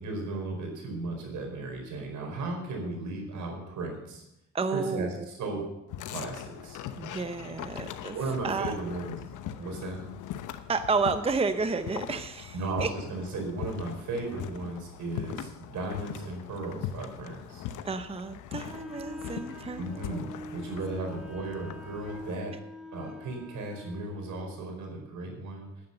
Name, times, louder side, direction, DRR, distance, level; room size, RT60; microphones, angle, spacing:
voice 1, 0.0-4.2 4.7-5.6 6.1-6.8 8.1-9.2 9.6-10.0 12.5-17.6 19.8-22.5 22.9-25.7, right 2 dB, 75° right, 2 dB, 4.7 m, -35 dB
voice 2, 4.5-5.3 7.0-8.2 8.4-8.8 10.7-12.9 17.8-20.2, right 4 dB, 20° right, 10 dB, 0.7 m, -31 dB
sound 1, 5.9-22.4, left 10 dB, 85° left, 0.9 m, -41 dB
Wind instrument woodwind instrument, 18.7-24.5, left 1 dB, ahead, 2.0 m, -45 dB
11.0 x 9.8 x 6.8 m, 0.88 s
cardioid pair, 90°, 30 cm